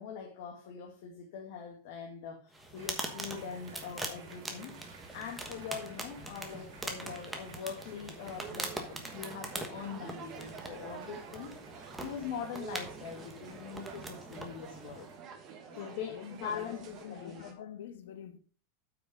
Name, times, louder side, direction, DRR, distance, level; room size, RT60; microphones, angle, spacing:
voice 1, 0.0-4.8 5.1-15.1 15.7-17.7, left 7 dB, 55° left, 1.8 m, -42 dB
sound 1, 2.5-15.2, right 1 dB, 5° right, 1.2 m, -43 dB
sound 2, 2.8-17.0, right 6 dB, 55° right, 2.6 m, -57 dB
sound 3, 8.2-17.5, right 7 dB, 25° right, 1.4 m, -49 dB
voice 2, 15.7-18.4, left 9 dB, 75° left, 1.3 m, -47 dB
8.7 x 5.9 x 5.0 m
supercardioid pair, 170°, 0 cm